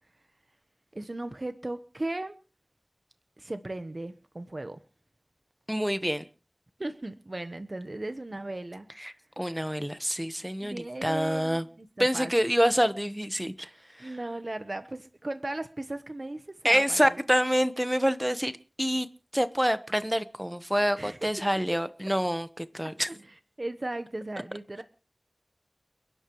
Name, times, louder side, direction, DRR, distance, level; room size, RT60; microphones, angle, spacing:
voice 1, 0.9-2.3 3.4-4.8 6.8-8.9 10.6-12.3 14.0-17.2 21.0-21.2 23.1-23.2 23.6-24.8, right 2 dB, 50° right, 1.1 m, -36 dB
voice 2, 5.7-6.2 9.0-11.6 12.0-13.7 14.0-14.2 16.6-18.5 18.8-19.1 19.3-23.1, equal, 5° right, 1.2 m, -27 dB
30.0 x 11.0 x 3.2 m
wide cardioid pair, 50°, 0 cm